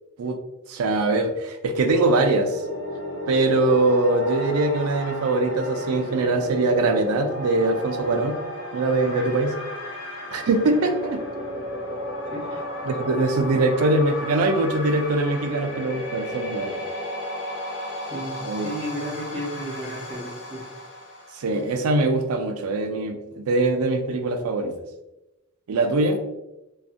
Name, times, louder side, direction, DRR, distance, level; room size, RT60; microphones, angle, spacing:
voice 1, 0.7-2.6 3.3-8.4 8.7-9.5 10.3-11.2 12.8-16.8 18.4-18.7 21.3-24.7 25.7-26.2, right 2 dB, 85° right, 6 dB, 0.4 m, -22 dB
sound 1, 1.9-21.7, left 1 dB, 85° left, 0.7 m, -33 dB
voice 2, 12.3-12.6 17.9-20.6, equal, 20° right, -5 dB, 0.5 m, -33 dB
2.6 x 2.3 x 2.4 m, 0.98 s
head